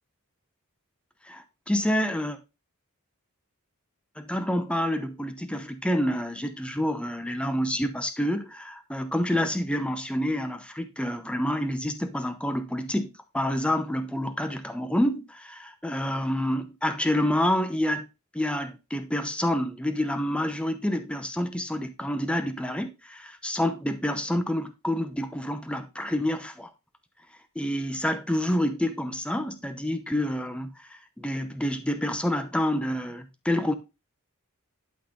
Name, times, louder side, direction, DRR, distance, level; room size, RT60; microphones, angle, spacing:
voice 1, 1.2-2.4 4.2-18.1 18.3-26.7 27.6-33.7, left 1 dB, 5° left, 0.7 m, -28 dB
11.5 x 4.0 x 3.8 m
head